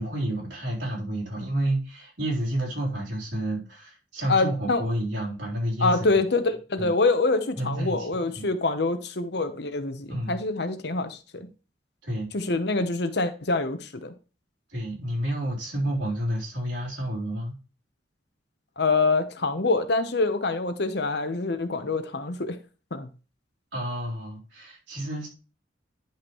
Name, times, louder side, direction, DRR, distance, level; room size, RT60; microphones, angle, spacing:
voice 1, 0.0-6.1 6.8-6.9 7.6-8.1 8.4-8.5 10.1-10.4 12.0-12.3 14.7-17.6 23.7-25.3, right 1 dB, 80° right, 3.8 m, -30 dB
voice 2, 4.3-4.8 5.8-11.5 12.3-14.1 18.8-22.6 22.9-23.1, left 3 dB, 65° left, 0.9 m, -25 dB
10.5 x 5.7 x 3.1 m
head